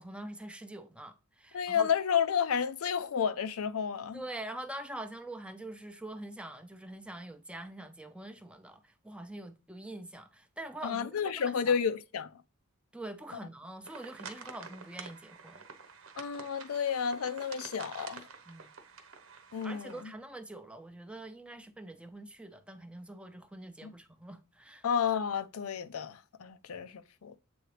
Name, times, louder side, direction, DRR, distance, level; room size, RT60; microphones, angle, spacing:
voice 1, 0.0-1.9 4.1-11.8 12.9-15.6 18.5-18.7 19.6-24.9, right 1 dB, 5° right, 0.5 m, -44 dB
voice 2, 1.5-4.2 10.8-12.3 16.2-18.2 19.5-20.1 23.8-23.9 24.8-27.4, left 7 dB, 85° left, 0.5 m, -31 dB
sound 1, 13.8-20.0, right 5 dB, 75° right, 1.0 m, -48 dB
7.9 x 3.9 x 3.2 m
head